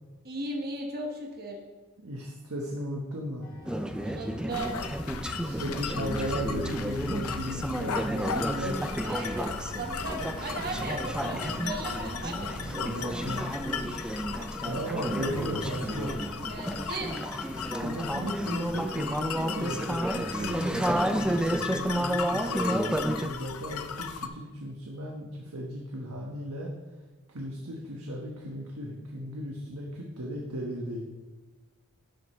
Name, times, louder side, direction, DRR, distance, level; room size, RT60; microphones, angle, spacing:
voice 1, 0.2-1.6 4.0-4.8 9.0-12.6 16.5-17.2, right 2 dB, 45° right, 1 dB, 1.3 m, -37 dB
voice 2, 2.0-3.5 5.3-8.9 10.7-11.7 12.6-14.3 14.6-16.2 17.8-26.7 27.3-31.0, equal, 85° right, -1 dB, 1.2 m, -36 dB
sound 1, 3.4-18.5, equal, 45° left, 1.6 m, -44 dB
Conversation / Chatter, 3.7-23.3, right 1 dB, 5° right, 0.3 m, -32 dB
sound 2, 4.5-24.3, left 5 dB, 75° left, 0.6 m, -37 dB
12.0 x 7.7 x 3.1 m, 1.2 s
head